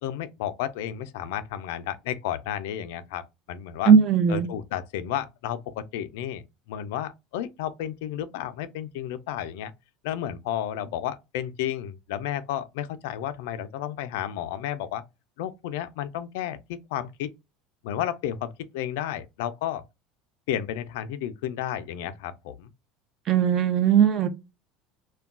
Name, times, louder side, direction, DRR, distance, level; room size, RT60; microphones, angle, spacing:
voice 1, 0.0-3.2 3.5-3.9 4.3-9.7 10.0-15.0 15.4-17.3 17.8-19.8 20.5-22.7, left 11 dB, 85° left, 0.4 m, -32 dB
voice 2, 3.9-4.5 23.3-24.3, right 7 dB, 35° right, 0.5 m, -18 dB
2.2 x 2.2 x 3.6 m
cardioid pair, 150°, 0 cm